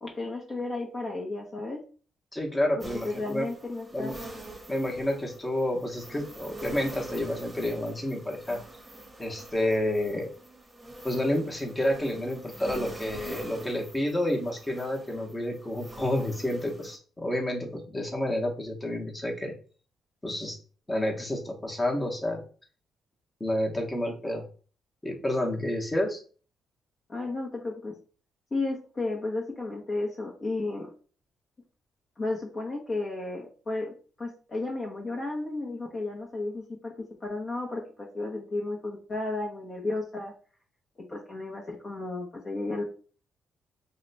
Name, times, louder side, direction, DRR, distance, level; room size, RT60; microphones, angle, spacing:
voice 1, 0.0-1.8 2.8-4.1 27.1-27.9 28.5-30.9 32.2-36.9 37.2-40.3 41.1-42.8, left 2 dB, 35° left, -1 dB, 0.8 m, -33 dB
voice 2, 2.3-3.5 3.9-4.1 4.7-8.6 9.2-10.3 11.0-19.5 20.2-20.6 20.9-22.4 23.4-24.4 25.0-26.2, left 1 dB, 15° left, 1 dB, 1.0 m, -29 dB
sound 1, 2.8-16.9, right 1 dB, 10° right, 1.1 m, -45 dB
2.8 x 2.2 x 4.0 m, 0.39 s
cardioid pair, 90°, 0 cm